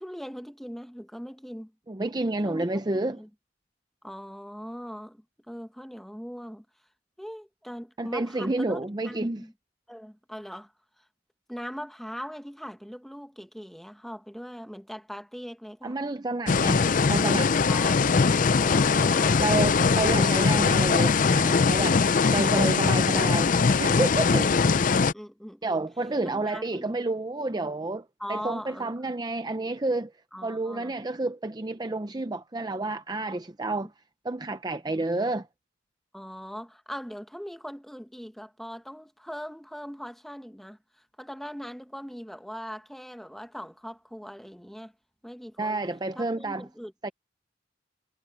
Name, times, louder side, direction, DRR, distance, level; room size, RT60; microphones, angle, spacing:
voice 1, 0.0-1.7 2.4-2.7 2.9-3.3 4.0-6.6 7.2-8.8 9.0-9.5 9.9-11.1 11.5-16.0 17.7-18.0 18.6-19.4 24.3-25.8 26.2-26.9 27.6-27.7 28.2-29.1 30.3-31.0 36.1-44.9 45.2-45.8 46.1-47.1, equal, ahead, 1.2 m, -41 dB
voice 2, 1.9-3.2 8.0-9.4 15.8-17.5 19.4-22.0 22.3-23.5 23.8-24.5 25.6-28.0 28.3-30.1 30.4-33.9 34.2-35.5 45.6-46.6 47.0-47.1, right 2 dB, 20° right, 0.6 m, -29 dB
sound 1, 16.5-25.1, left 5 dB, 45° left, 0.5 m, -21 dB
head